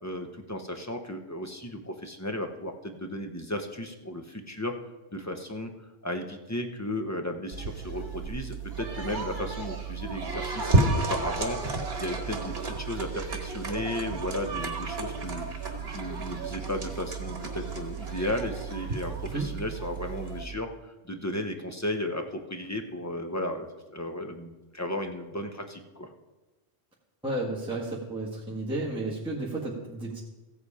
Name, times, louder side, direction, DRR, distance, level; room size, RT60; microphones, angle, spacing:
voice 1, 0.0-4.7 5.1-5.7 6.0-11.6 12.0-26.1, left 1 dB, 15° left, 5 dB, 0.8 m, -35 dB
sound 1, 7.5-20.4, right 3 dB, 55° right, 1.6 m, -32 dB
voice 2, 27.2-30.2, right 2 dB, 5° right, -5 dB, 1.5 m, -32 dB
15.0 x 8.1 x 4.9 m, 1.1 s
omnidirectional pair, 1.3 m